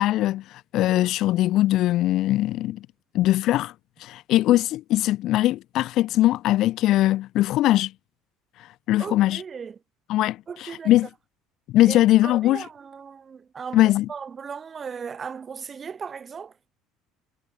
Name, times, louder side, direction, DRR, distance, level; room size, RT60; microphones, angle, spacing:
voice 1, 0.0-2.8 3.1-3.7 4.0-7.9 8.6-9.4 10.1-11.1 11.7-12.7 13.7-14.1, left 15 dB, 55° left, 0.4 m, -21 dB
voice 2, 9.0-9.7 10.5-10.9 11.9-16.5, right 6 dB, 25° right, 6.2 m, -37 dB
cardioid pair, 135°, 0 cm